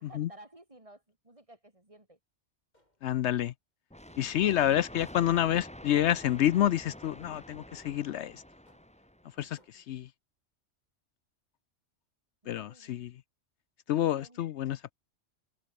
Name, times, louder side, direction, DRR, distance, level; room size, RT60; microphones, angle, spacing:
voice 1, 0.0-2.2 9.4-9.8 12.4-13.1 14.0-14.8, right 1 dB, 25° right, 3.5 m, -55 dB
sound 1, 2.7-3.2 4.1-4.5 5.1-5.5 5.9-6.4 6.9-7.3 7.8-8.2 8.7-9.1 9.6-10.0, left 1 dB, 35° left, 6.9 m, -68 dB
voice 2, 3.0-3.5 4.2-8.4 9.4-10.1 12.5-13.1 13.9-14.8, left 11 dB, 70° left, 0.8 m, -28 dB
sound 2, 3.9-9.5, equal, 5° left, 2.2 m, -48 dB
open air
omnidirectional pair, 1.2 m